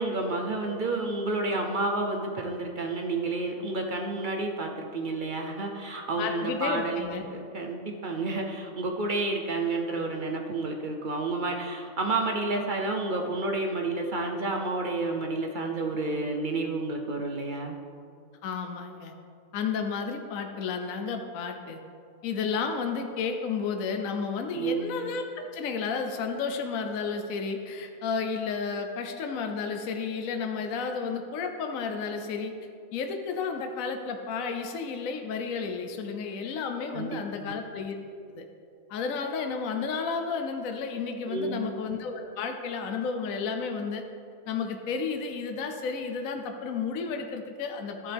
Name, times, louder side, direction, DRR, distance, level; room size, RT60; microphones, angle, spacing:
voice 1, 0.0-17.8 24.5-25.0 36.9-37.6 41.3-41.7, right 3 dB, 45° right, 2 dB, 0.7 m, -30 dB
voice 2, 6.2-7.3 18.4-19.1 19.5-21.8 22.2-32.5 32.9-38.0 38.3-38.4 38.9-44.0 44.5-48.1, left 5 dB, 70° left, 5 dB, 1.1 m, -32 dB
13.0 x 7.5 x 3.5 m, 2.4 s
omnidirectional pair, 1.6 m